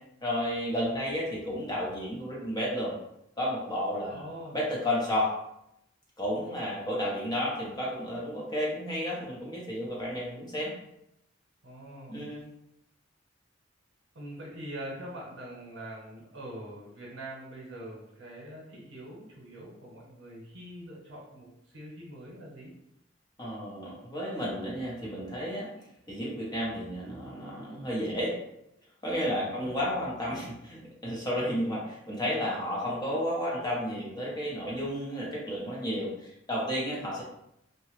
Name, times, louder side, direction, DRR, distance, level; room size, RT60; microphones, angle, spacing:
voice 1, 0.2-2.9 3.4-4.2 4.5-5.3 6.2-10.7 12.1-12.4 23.4-25.7 26.1-28.3 29.0-37.2, equal, 20° left, -5 dB, 0.8 m, -32 dB
voice 2, 4.1-4.6 11.6-12.2 14.1-22.7 29.4-29.7, right 1 dB, 75° right, -5 dB, 0.9 m, -43 dB
2.8 x 2.2 x 3.1 m, 0.81 s
head